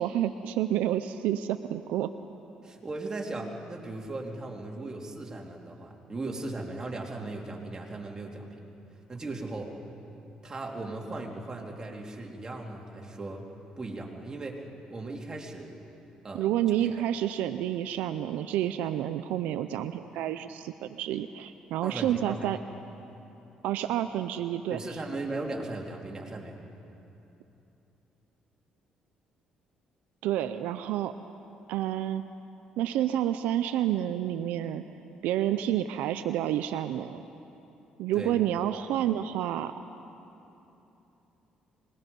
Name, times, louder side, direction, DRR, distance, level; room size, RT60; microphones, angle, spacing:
voice 1, 0.0-2.1 16.3-22.6 23.6-24.8 30.2-31.1 31.7-32.2 32.8-34.8 35.2-37.2 38.0-39.7, right 11 dB, 85° right, 10 dB, 0.6 m, -29 dB
voice 2, 2.6-8.6 9.1-9.7 10.4-13.5 13.8-15.7 16.2-16.5 21.8-22.4 24.7-26.6 38.1-38.4, right 2 dB, 25° right, -1 dB, 3.0 m, -37 dB
24.5 x 20.0 x 5.4 m, 2.9 s
cardioid pair, 85°, 3 cm